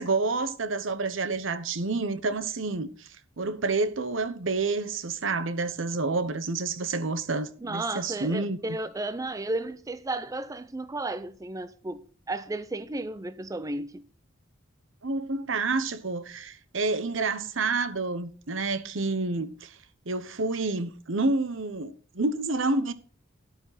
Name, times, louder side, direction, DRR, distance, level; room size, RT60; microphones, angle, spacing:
voice 1, 0.0-3.1 3.4-8.8 15.0-19.8 20.1-22.9, right 3 dB, 70° right, 1.0 m, -29 dB
voice 2, 7.6-14.0, right 2 dB, 15° right, 0.5 m, -33 dB
11.5 x 9.0 x 4.1 m
head